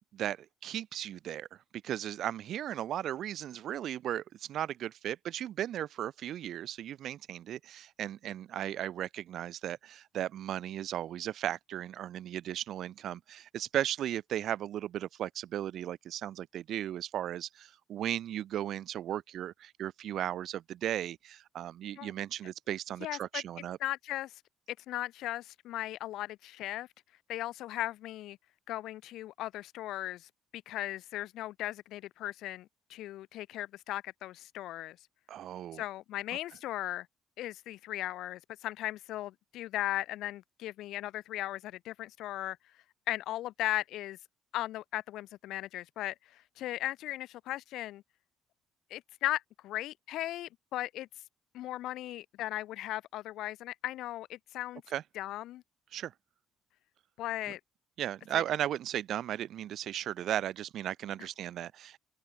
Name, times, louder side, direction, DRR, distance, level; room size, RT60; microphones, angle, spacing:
voice 1, 0.1-1.5 1.7-23.8 35.3-35.8 54.9-55.0 55.9-56.1 58.0-62.0, right 11 dB, 65° right, 0.6 m, -36 dB
voice 2, 23.0-23.4 23.8-24.4 24.9-26.9 27.3-28.4 28.7-35.0 35.7-37.1 37.4-42.6 43.1-44.2 44.5-48.0 48.9-51.1 51.5-54.8 55.2-55.6 57.2-57.6 58.3-58.4, left 14 dB, 75° left, 0.4 m, -37 dB
supercardioid pair, 65°, 0 cm